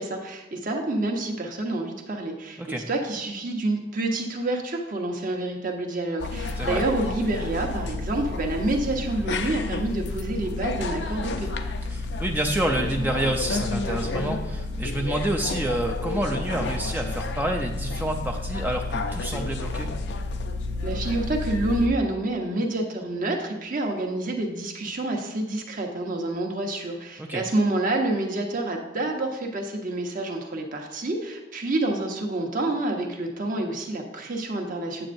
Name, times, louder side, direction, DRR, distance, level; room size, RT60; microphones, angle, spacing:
voice 1, 0.0-11.5 20.8-35.1, right 2 dB, 50° right, 2 dB, 1.1 m, -28 dB
sound 1, 6.2-21.9, left 2 dB, 70° left, 0.5 m, -30 dB
voice 2, 11.9-19.9 27.2-27.4, right 1 dB, 10° right, 2 dB, 0.4 m, -28 dB
8.8 x 7.5 x 2.6 m, 0.97 s
head